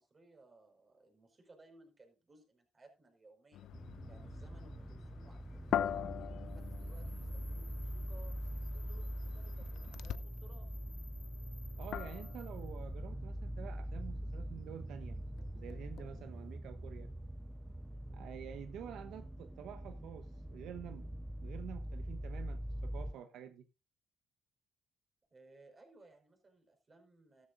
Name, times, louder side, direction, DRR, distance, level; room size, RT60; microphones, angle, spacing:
voice 1, 0.0-3.7 4.1-8.4 8.7-10.8 25.3-27.5, right 2 dB, 30° right, 5.1 m, -62 dB
sound 1, 3.5-10.4 10.8-16.6, left 10 dB, 80° left, 0.6 m, -44 dB
sound 2, 3.7-23.1, equal, 10° right, 0.8 m, -43 dB
sound 3, 6.5-12.8, left 2 dB, 15° left, 1.4 m, -60 dB
voice 2, 11.8-15.2 15.5-17.1 18.1-23.7, right 9 dB, 80° right, 0.9 m, -49 dB
14.0 x 13.0 x 2.6 m
cardioid pair, 90°, 0 cm